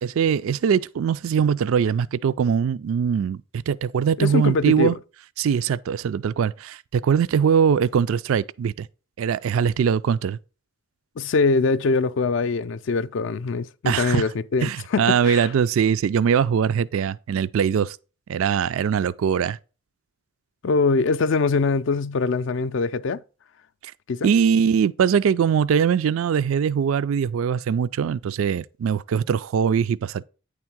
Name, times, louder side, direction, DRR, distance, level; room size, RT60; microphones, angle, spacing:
voice 1, 0.0-5.0 5.4-8.9 9.2-10.4 13.9-14.3 14.6-18.0 18.3-19.6 23.8-23.9 24.2-30.2, right 7 dB, 75° right, 0.3 m, -22 dB
voice 2, 4.2-5.0 11.2-15.5 20.6-23.2 24.1-24.3, left 4 dB, 60° left, 0.4 m, -23 dB
9.4 x 3.6 x 6.0 m
head